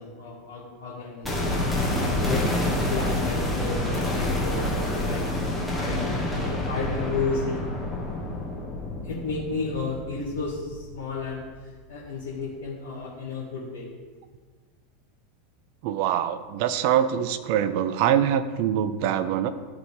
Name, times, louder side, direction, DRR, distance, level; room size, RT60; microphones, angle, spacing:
voice 1, 0.0-1.4 2.0-6.1 6.5-7.7 9.0-13.9, left 4 dB, 65° left, -7 dB, 2.0 m, -33 dB
sound 1, 1.2-11.2 11.5-11.6, left 1 dB, ahead, 2.2 m, -28 dB
voice 2, 15.8-19.5, right 10 dB, 50° right, 12 dB, 0.5 m, -24 dB
12.5 x 4.9 x 3.6 m, 1.4 s
figure-of-eight pair, 85°, 0 cm